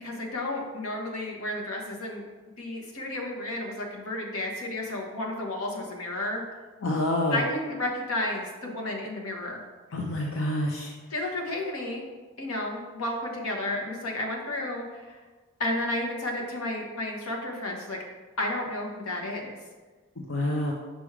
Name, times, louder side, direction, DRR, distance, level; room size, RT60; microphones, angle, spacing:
voice 1, 0.0-2.2 2.6-6.4 7.3-9.6 11.1-12.0 12.4-15.2 15.6-18.0 18.4-19.5, left 1 dB, 85° left, 0 dB, 1.1 m, -32 dB
voice 2, 6.8-7.4 9.9-10.9 20.2-20.7, left 1 dB, 65° left, 0 dB, 0.6 m, -27 dB
6.0 x 3.3 x 4.8 m, 1.3 s
head